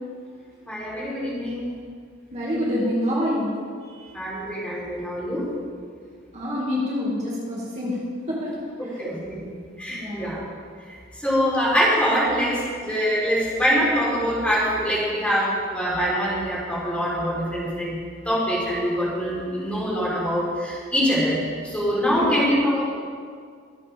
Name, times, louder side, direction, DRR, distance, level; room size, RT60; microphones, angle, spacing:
voice 1, 0.7-1.7 4.1-5.5 8.8-9.5 9.8-10.4 10.9-18.0 18.2-22.8, equal, 5° left, -7 dB, 3.9 m, -24 dB
voice 2, 2.3-3.5 3.9-4.1 6.3-8.0 8.3-8.6 9.4-9.5 9.9-10.4 22.1-22.3, left 1 dB, 35° right, -6 dB, 2.2 m, -27 dB
24.5 x 8.3 x 3.6 m, 2.1 s
head